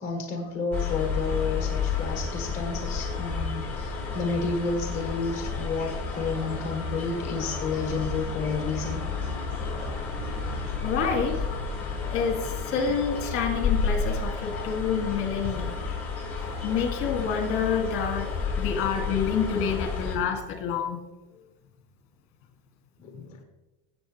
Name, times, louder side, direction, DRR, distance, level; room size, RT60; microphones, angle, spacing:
voice 1, 0.0-9.0 23.0-23.4, left 4 dB, 20° left, 3 dB, 1.2 m, -31 dB
sound 1, 0.7-20.2, left 5 dB, 5° left, 3.8 m, -31 dB
voice 2, 10.8-11.4 12.1-15.7 16.4-18.3 18.6-21.0, left 6 dB, 40° left, 4 dB, 2.3 m, -28 dB
16.5 x 7.3 x 3.3 m, 1.1 s
cardioid pair, 160°, 36 cm